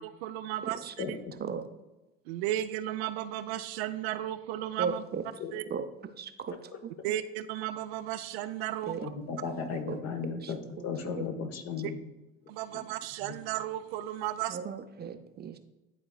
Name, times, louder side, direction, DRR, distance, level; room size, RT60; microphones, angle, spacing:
voice 1, 0.0-0.8 1.1-1.2 2.3-5.0 5.5-5.6 7.0-8.9 12.5-14.6, right 13 dB, 85° right, 10 dB, 0.5 m, -34 dB
voice 2, 0.6-0.9 1.4-1.7 4.8-5.2 5.7-5.9 6.2-6.7 8.9-9.1 9.9-10.0 10.4-10.5 11.2-11.3 14.5-15.6, right 6 dB, 35° right, 8 dB, 0.6 m, -36 dB
voice 3, 9.0-10.6 10.8-12.0 12.7-12.8 13.2-13.3, left 5 dB, 55° left, 6 dB, 1.1 m, -35 dB
11.5 x 3.9 x 2.3 m, 1.0 s
supercardioid pair, 80°, 30 cm